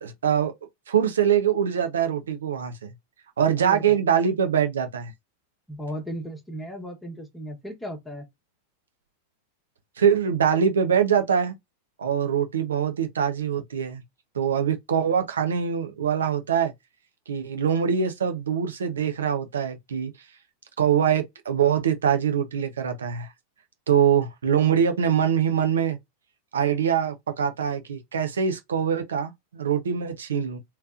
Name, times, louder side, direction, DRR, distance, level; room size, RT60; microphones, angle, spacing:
voice 1, 0.0-0.5 0.9-2.9 3.4-5.1 10.0-11.5 12.0-14.0 14.3-16.7 17.3-20.1 20.8-23.3 23.9-26.0 26.5-30.6, right 8 dB, 65° right, 0.7 m, -23 dB
voice 2, 3.6-4.0 5.7-8.2, equal, 5° left, 1.1 m, -36 dB
3.3 x 2.9 x 2.4 m
figure-of-eight pair, 90°, 0 cm